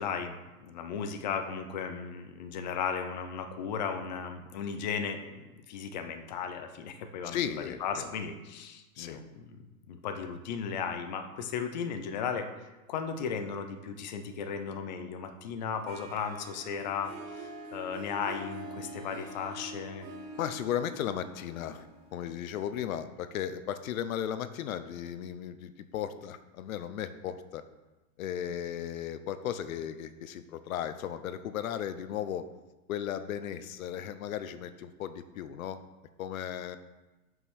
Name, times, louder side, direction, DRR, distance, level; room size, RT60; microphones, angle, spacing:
voice 1, 0.0-7.4 7.8-9.6 9.9-20.1, left 6 dB, 30° left, 7 dB, 0.5 m, -36 dB
voice 2, 7.2-8.1 9.0-9.2 20.4-21.9 22.1-27.6 28.2-32.5 32.9-35.8 36.2-36.8, left 9 dB, 65° left, 12 dB, 0.7 m, -35 dB
Harp, 15.9-22.8, right 1 dB, 20° right, 0.7 m, -45 dB
5.8 x 5.5 x 6.3 m, 1.1 s
supercardioid pair, 170°, 45 cm